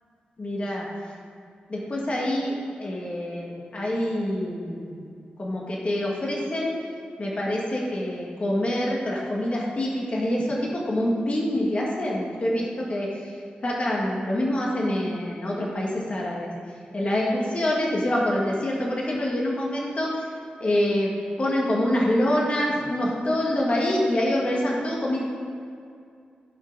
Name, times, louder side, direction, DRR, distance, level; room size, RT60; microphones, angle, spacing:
voice 1, 0.4-0.9 1.7-5.0 5.4-6.7 7.2-16.5 16.9-20.3 20.6-21.1 21.4-25.2, left 1 dB, 40° left, -3 dB, 1.7 m, -26 dB
15.5 x 5.6 x 4.0 m, 2.3 s
wide cardioid pair, 95°, 3 cm